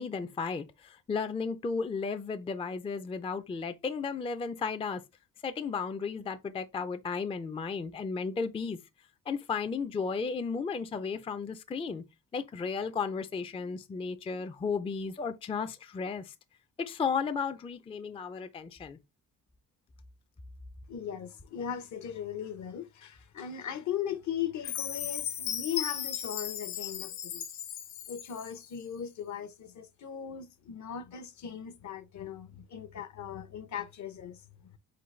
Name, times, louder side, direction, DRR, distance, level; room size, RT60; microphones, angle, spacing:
voice 1, 0.0-5.0 5.4-8.8 9.3-12.0 12.3-16.3 16.8-19.0, left 5 dB, 15° left, 0.4 m, -34 dB
voice 2, 20.9-27.4 28.1-34.4, left 9 dB, 55° left, 0.7 m, -38 dB
Chime, 24.6-28.7, left 9 dB, 80° left, 0.9 m, -36 dB
3.9 x 3.8 x 3.1 m
cardioid pair, 85°, 35 cm